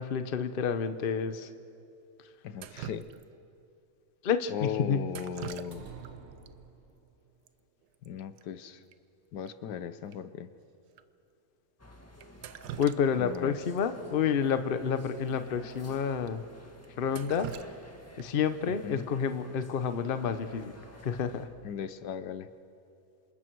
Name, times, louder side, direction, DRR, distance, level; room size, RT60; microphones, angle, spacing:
voice 1, 0.0-1.5 4.2-5.0 12.8-16.4 17.0-17.5 18.2-20.7 21.0-21.5, left 7 dB, 40° left, 10 dB, 0.9 m, -29 dB
voice 2, 2.4-3.0 4.5-5.9 8.0-8.8 9.3-10.5 13.2-13.6 18.7-19.1 21.6-22.5, left 8 dB, 85° left, 12 dB, 1.4 m, -37 dB
Drip, 2.6-3.6 5.1-6.1 6.4-6.5 7.5-7.6 7.8-8.1 8.4-8.5 8.9-9.0 9.5-9.6 10.1-10.2 10.9-11.0 12.2-13.4 13.8-13.9 15.2-15.3 15.7-15.8 16.3-16.4 16.8-18.5 20.5-20.8 21.2-21.6, right 11 dB, 80° right, 1.3 m, -44 dB
sound 1, 5.7-7.3, right 6 dB, 40° right, 1.5 m, -48 dB
sound 2, 11.8-21.5, left 1 dB, 10° left, 1.5 m, -52 dB
27.5 x 26.5 x 4.7 m, 2.6 s
omnidirectional pair, 1.8 m